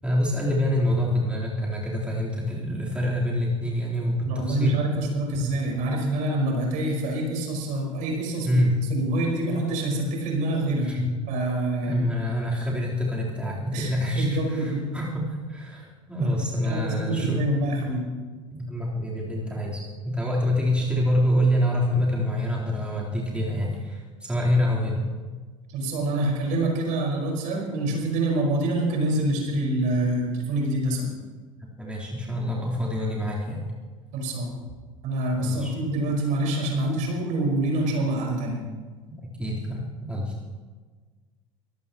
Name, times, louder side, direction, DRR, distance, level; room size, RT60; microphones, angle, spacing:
voice 1, 0.0-4.8 8.4-8.8 10.8-11.1 11.8-17.4 18.5-25.1 31.8-33.7 35.4-35.8 39.4-40.3, left 1 dB, 5° right, -5 dB, 3.7 m, -26 dB
voice 2, 4.2-8.6 8.9-10.9 11.3-12.1 13.7-14.9 16.2-16.3 16.6-18.1 25.7-31.1 34.1-34.5 35.0-38.6, right 1 dB, 50° right, -1 dB, 5.0 m, -26 dB
24.0 x 16.5 x 3.0 m, 1.4 s
figure-of-eight pair, 70°, 17 cm